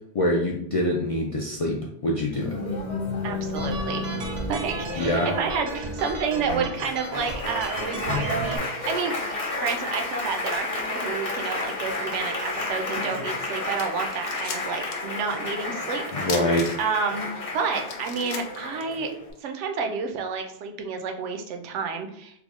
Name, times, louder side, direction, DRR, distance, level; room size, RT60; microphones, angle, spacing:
voice 1, 0.1-1.8 2.0-2.5 5.0-5.3 16.1-16.7, left 1 dB, 60° left, -2 dB, 0.3 m, -24 dB
Applause, 2.3-19.3, left 2 dB, 35° left, 0.7 m, -31 dB
voice 2, 3.2-9.2 9.6-16.5 16.8-19.1 19.4-22.4, right 5 dB, 90° right, 4 dB, 0.9 m, -30 dB
sound 1, 3.6-8.6, right 3 dB, 50° right, 0.5 m, -34 dB
sound 2, 13.8-15.1 15.4-15.5 16.2-17.1 17.5-17.6 17.9-19.4, left 5 dB, 80° left, 0.9 m, -36 dB
3.5 x 2.0 x 3.5 m, 0.74 s
omnidirectional pair, 1.2 m